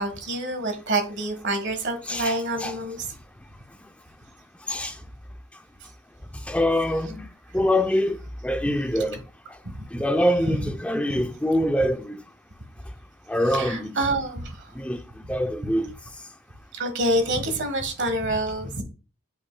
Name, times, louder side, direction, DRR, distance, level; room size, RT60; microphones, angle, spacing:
voice 1, 0.0-3.1 8.6-9.0 9.6-9.7 10.4-10.7 11.1-11.2 13.4-14.6 15.2-15.3 16.7-18.8, right 1 dB, 50° right, 1.4 m, -27 dB
voice 2, 2.1-2.7 4.7-5.0 6.5-7.3 7.5-8.2 8.4-9.2 9.9-12.2 13.3-14.0 14.8-15.0 15.3-15.9, equal, 5° left, 0.5 m, -24 dB
8.2 x 5.6 x 2.2 m
head